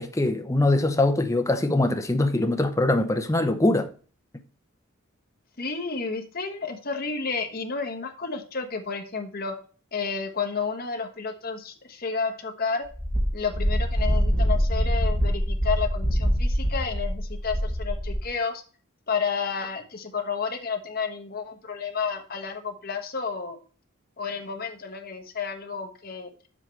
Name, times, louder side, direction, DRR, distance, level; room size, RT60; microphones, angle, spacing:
voice 1, 0.0-3.9, left 2 dB, 15° left, 0.6 m, -22 dB
voice 2, 5.6-9.6 9.9-12.8 13.3-18.6 19.1-23.6 24.2-26.3, left 5 dB, 45° left, 1.2 m, -31 dB
Wind, 12.9-18.3, equal, 45° right, 3.9 m, -24 dB
9.0 x 7.5 x 3.3 m
head